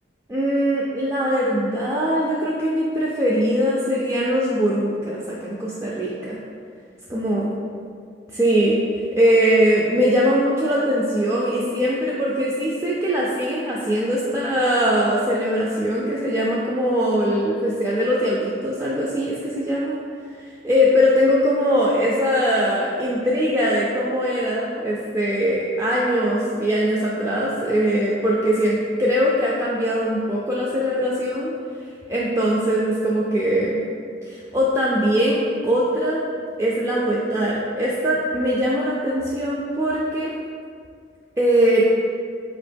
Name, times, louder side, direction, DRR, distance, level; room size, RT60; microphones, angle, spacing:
voice 1, 0.3-6.4 7.1-7.6 8.3-8.8 9.2-20.0 20.6-31.5 32.1-33.8 34.2-35.4 35.6-36.2 36.6-40.3 41.4-41.8, equal, 15° right, -6 dB, 0.3 m, -21 dB
4.4 x 3.0 x 3.3 m, 2.2 s
head